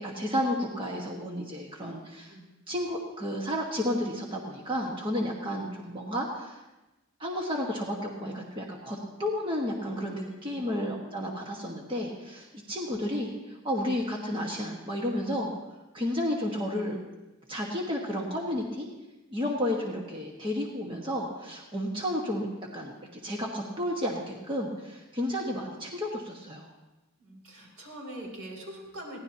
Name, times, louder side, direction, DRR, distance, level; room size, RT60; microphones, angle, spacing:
voice 1, 0.0-2.3 2.7-6.6 7.2-15.5 15.9-17.0 17.5-18.9 19.3-26.7, left 1 dB, 25° right, -1 dB, 1.5 m, -32 dB
voice 2, 10.2-10.7 27.2-29.2, right 1 dB, 80° right, -2 dB, 5.4 m, -43 dB
22.5 x 17.0 x 2.9 m, 1.1 s
head